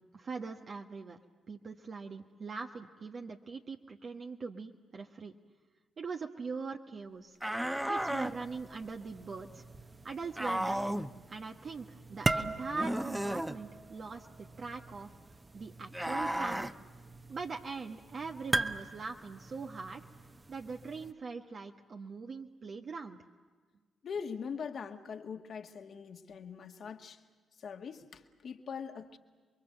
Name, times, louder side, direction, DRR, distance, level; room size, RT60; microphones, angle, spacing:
voice 1, 0.1-1.2 1.5-5.3 6.0-7.4 7.9-9.6 10.0-15.1 15.5-16.7 17.3-20.0 20.5-23.2, right 4 dB, 50° right, 2 dB, 1.3 m, -42 dB
sound 1, 7.4-8.3 10.4-11.1 12.7-13.6 15.9-16.7, right 1 dB, 10° right, 1.0 m, -33 dB
sound 2, 7.9-21.1, right 2 dB, 25° right, 1.2 m, -40 dB
voice 2, 24.0-27.2 27.6-29.2, left 6 dB, 60° left, 5 dB, 1.9 m, -42 dB
29.0 x 22.5 x 8.0 m, 1.4 s
hypercardioid pair, 45°, 0 cm